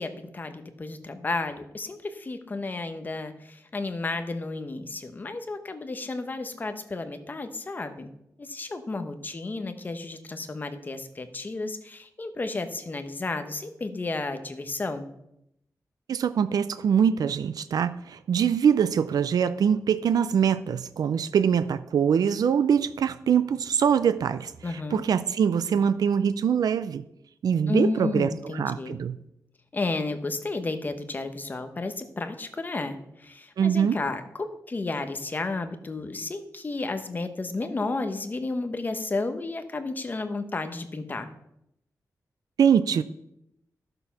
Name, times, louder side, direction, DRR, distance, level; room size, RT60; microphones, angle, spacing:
voice 1, 0.0-8.1 8.4-15.1 24.6-25.0 27.7-29.0 29.7-41.3, left 3 dB, 30° left, 8 dB, 1.0 m, -32 dB
voice 2, 16.1-27.0 27.4-29.2 33.6-34.0 42.6-43.0, right 7 dB, 80° right, 13 dB, 0.5 m, -23 dB
12.5 x 6.8 x 5.8 m, 0.79 s
wide cardioid pair, 165°, 6 cm